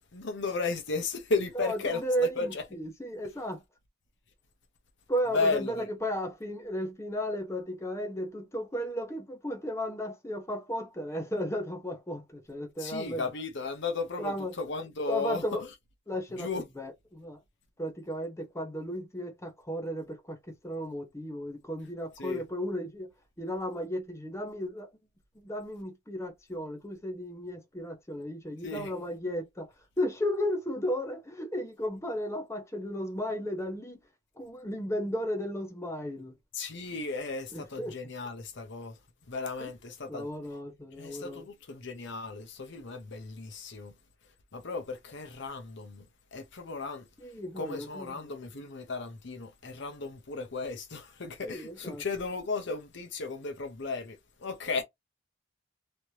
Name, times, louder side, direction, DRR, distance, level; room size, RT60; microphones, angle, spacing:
voice 1, 0.1-2.6 5.3-5.9 12.8-15.7 16.3-16.7 22.2-22.4 28.6-29.0 36.5-39.0 39.3-40.3 41.0-43.9 44.5-46.1 46.3-47.1 47.6-54.8, left 4 dB, 65° left, 0.8 m, -35 dB
voice 2, 1.6-3.6 5.1-13.2 14.2-14.5 15.1-15.6 16.1-16.5 16.8-17.4 17.8-20.4 20.6-23.1 23.4-24.9 25.4-29.7 30.0-34.0 34.4-36.3 37.5-37.9 39.6-39.7 40.1-41.4 47.2-48.1 51.4-52.0, equal, 15° left, 0.8 m, -34 dB
3.2 x 3.0 x 2.8 m
head